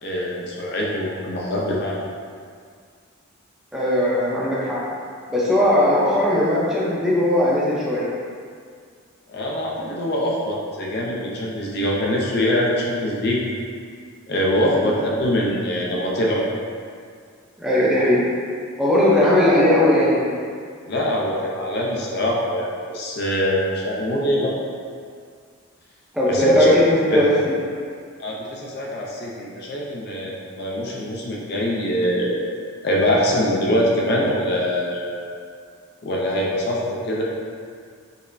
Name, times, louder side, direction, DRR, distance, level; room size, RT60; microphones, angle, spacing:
voice 1, 0.0-2.1 9.3-13.4 14.3-16.4 20.9-24.5 26.3-26.7 27.1-27.2 28.2-32.4 32.8-35.2 36.0-37.2, equal, 50° left, -3 dB, 0.4 m, -23 dB
voice 2, 3.7-4.8 5.3-8.1 14.7-15.0 17.6-18.2 18.8-20.4 26.1-27.3, left 1 dB, 5° right, -9 dB, 0.5 m, -18 dB
5.1 x 2.0 x 2.6 m, 2.1 s
head